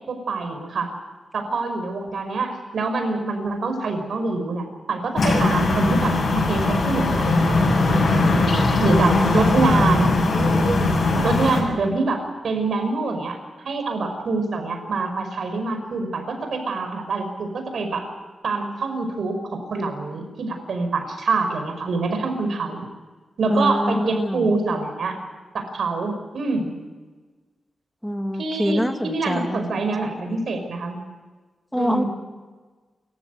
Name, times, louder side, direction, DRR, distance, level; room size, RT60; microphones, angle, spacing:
voice 1, 0.1-0.9 1.3-6.2 6.5-8.0 8.8-10.2 11.2-13.4 13.6-18.1 18.4-22.9 23.4-25.2 25.5-26.7 28.4-31.0 31.7-32.1, right 3 dB, 70° right, 6 dB, 5.5 m, -25 dB
sound 1, 5.2-11.6, left 2 dB, 60° left, 6.9 m, -19 dB
voice 2, 9.1-10.1 23.5-24.5 28.0-30.4 31.7-32.0, equal, 5° left, 5 dB, 2.1 m, -26 dB
28.5 x 15.0 x 8.1 m, 1.4 s
wide cardioid pair, 150°, 0 cm